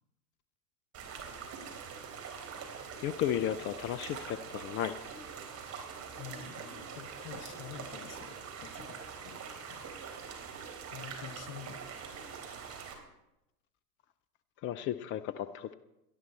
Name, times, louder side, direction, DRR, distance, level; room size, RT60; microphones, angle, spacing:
sound 1, 0.9-12.9, right 6 dB, 30° right, 3.8 m, -44 dB
voice 1, 3.0-5.0 14.6-15.7, left 11 dB, 25° left, 15 dB, 0.5 m, -34 dB
voice 2, 6.2-9.0 9.2-9.4 9.7-9.9 10.4-10.6 10.9-11.9 12.2-12.5, left 9 dB, 55° left, 12 dB, 1.3 m, -48 dB
18.5 x 12.5 x 4.3 m, 0.90 s
figure-of-eight pair, 85°, 48 cm